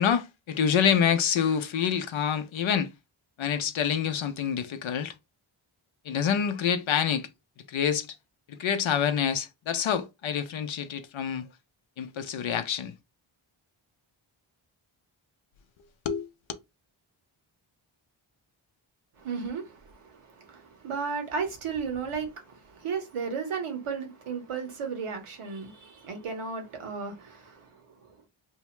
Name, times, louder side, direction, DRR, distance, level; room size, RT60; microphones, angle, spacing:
voice 1, 0.0-2.9 3.4-5.1 6.1-7.3 7.7-8.1 8.5-11.5 12.0-12.9 16.1-16.3, left 8 dB, 70° left, 0.6 m, -27 dB
voice 2, 19.2-27.7, right 5 dB, 85° right, 1.0 m, -34 dB
2.7 x 2.1 x 3.0 m
cardioid pair, 65°, 49 cm